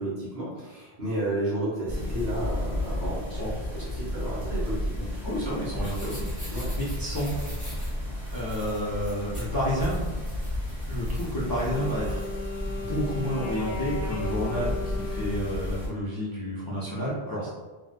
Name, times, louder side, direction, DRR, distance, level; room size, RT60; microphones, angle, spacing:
voice 1, 0.0-3.4 3.7-5.2 6.5-6.7, right 1 dB, 80° right, -7 dB, 1.4 m, -32 dB
sound 1, 1.9-15.9, left 1 dB, 45° right, 1.7 m, -33 dB
voice 2, 3.3-3.9 5.2-7.4 8.3-10.1 10.9-12.2 12.6-17.5, equal, 30° left, -8 dB, 0.5 m, -31 dB
sound 2, 5.3-12.3, right 1 dB, 10° right, 0.9 m, -41 dB
Wind instrument woodwind instrument, 11.4-16.0, left 2 dB, 65° left, 0.8 m, -36 dB
3.5 x 2.1 x 2.5 m, 1.2 s
omnidirectional pair, 1.0 m